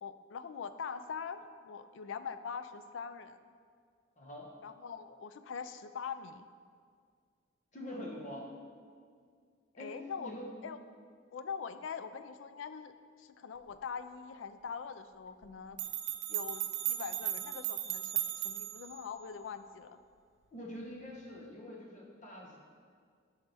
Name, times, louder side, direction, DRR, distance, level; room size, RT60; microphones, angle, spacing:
voice 1, 0.0-3.4 4.6-6.5 9.8-10.3 10.6-10.8 11.3-15.8 16.3-20.0, left 6 dB, 80° left, 11 dB, 0.4 m, -43 dB
voice 2, 4.2-4.5 7.7-8.5 9.8-10.5 20.5-22.6, left 1 dB, 40° left, -1 dB, 1.1 m, -45 dB
sound 1, 15.4-15.5 15.8-18.9, right 13 dB, 65° right, 0.5 m, -36 dB
10.0 x 5.6 x 3.4 m, 2.1 s
head